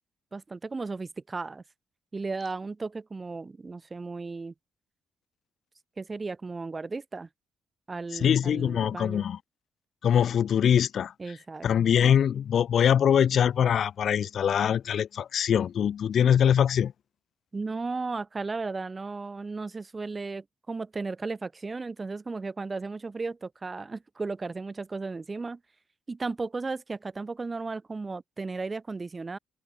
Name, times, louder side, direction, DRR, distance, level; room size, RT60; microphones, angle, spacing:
voice 1, 0.3-1.6 2.1-4.5 6.0-7.3 7.9-9.3 11.2-11.7 17.5-25.6 26.1-29.4, right 3 dB, 25° right, 3.4 m, -35 dB
voice 2, 8.1-9.4 10.0-11.1 11.6-16.9, left 8 dB, 60° left, 1.6 m, -23 dB
cardioid pair, 90°, 0 cm